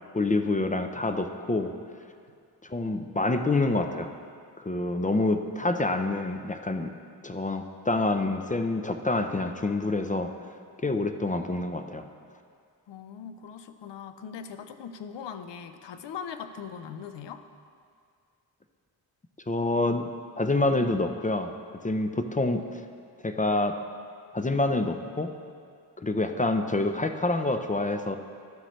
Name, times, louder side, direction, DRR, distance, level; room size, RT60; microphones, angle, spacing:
voice 1, 0.1-1.7 2.6-4.1 4.6-6.9 7.2-10.3 10.8-12.1 19.5-20.1 20.4-21.5 21.8-22.8 23.2-23.8 24.3-25.3 26.0-28.2, left 2 dB, 20° left, 7 dB, 0.5 m, -27 dB
voice 2, 12.9-17.4, left 7 dB, 80° left, 9 dB, 0.7 m, -40 dB
12.5 x 7.6 x 3.1 m, 2.3 s
cardioid pair, 60°, 42 cm